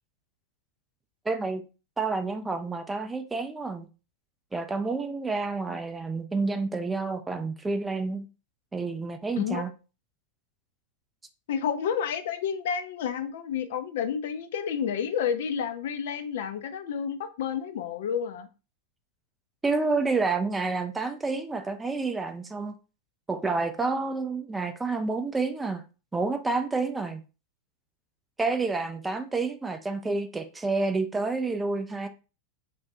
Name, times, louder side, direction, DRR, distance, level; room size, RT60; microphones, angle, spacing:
voice 1, 1.3-1.6 2.0-3.9 4.5-8.3 8.7-9.7 19.6-22.8 23.3-25.8 26.1-27.2 28.4-32.1, right 3 dB, 10° right, 0.4 m, -29 dB
voice 2, 11.5-18.5, left 7 dB, 55° left, 0.4 m, -30 dB
2.5 x 2.2 x 3.5 m
figure-of-eight pair, 90°, 0 cm